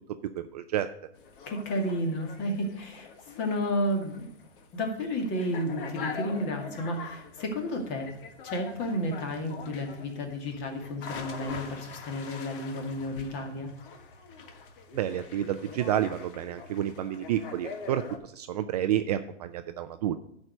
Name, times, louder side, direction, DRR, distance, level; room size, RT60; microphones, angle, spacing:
voice 1, 0.5-0.9 14.9-20.2, right 11 dB, 35° right, 9 dB, 0.4 m, -30 dB
sound 1, 1.1-18.2, left 5 dB, 45° left, 1.4 m, -44 dB
voice 2, 1.5-4.3 4.7-8.1 8.4-13.7, equal, 30° left, 3 dB, 2.1 m, -32 dB
11.0 x 4.8 x 6.5 m, 0.73 s
hypercardioid pair, 135°, 35 cm